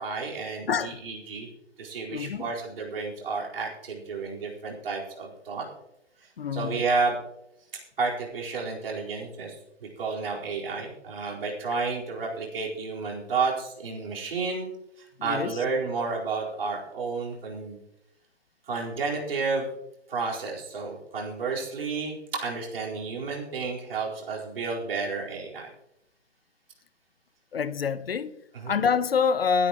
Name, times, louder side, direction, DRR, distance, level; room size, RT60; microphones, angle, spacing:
voice 1, 0.0-1.5 1.8-5.7 6.5-7.2 8.0-9.5 9.8-14.7 15.2-17.8 18.6-19.7 20.1-25.7 28.5-28.8, right 4 dB, 50° right, 4.5 m, -31 dB
voice 2, 0.7-1.0 2.1-2.5 6.4-6.8 15.2-15.6 27.5-28.4 28.7-29.7, left 6 dB, 55° left, 0.8 m, -26 dB
23.0 x 9.6 x 3.0 m
figure-of-eight pair, 140°, 36 cm